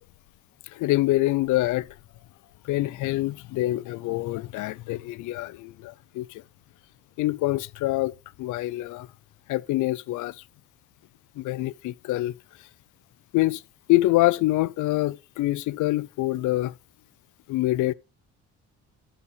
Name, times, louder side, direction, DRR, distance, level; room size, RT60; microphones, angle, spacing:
voice 1, 0.7-1.9 2.6-6.4 7.2-8.1 8.4-9.1 9.5-10.4 11.4-12.3 13.3-13.6 13.9-16.7 17.5-17.9, left 17 dB, 80° left, 0.5 m, -25 dB
9.7 x 5.5 x 4.1 m
cardioid pair, 90°, 30 cm